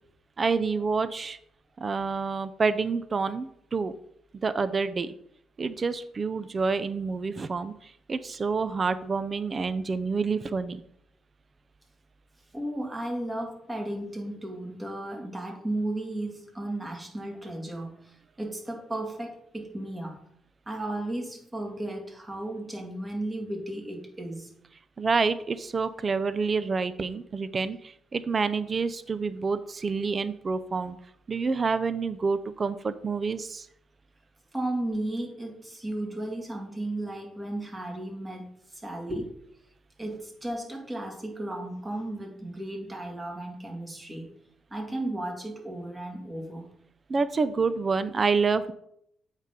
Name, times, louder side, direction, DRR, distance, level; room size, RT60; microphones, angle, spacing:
voice 1, 0.4-1.4 1.8-3.9 4.4-5.1 5.6-10.8 25.0-31.0 31.3-33.7 47.1-48.7, right 4 dB, 35° right, 14 dB, 0.4 m, -28 dB
voice 2, 12.5-20.2 20.7-24.5 34.5-39.3 40.0-44.3 44.7-46.7, right 1 dB, 20° right, 1 dB, 2.1 m, -34 dB
8.0 x 5.6 x 3.7 m, 0.72 s
cardioid pair, 90°, 0 cm